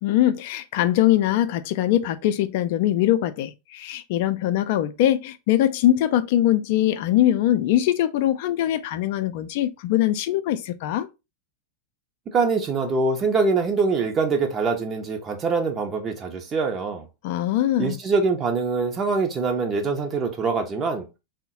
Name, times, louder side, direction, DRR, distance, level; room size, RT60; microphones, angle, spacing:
voice 1, 0.0-11.1 17.2-18.0, left 13 dB, 50° left, 0.4 m, -22 dB
voice 2, 12.3-17.1 17.8-21.1, right 4 dB, 25° right, 0.6 m, -24 dB
3.6 x 2.1 x 2.7 m
figure-of-eight pair, 90°, 0 cm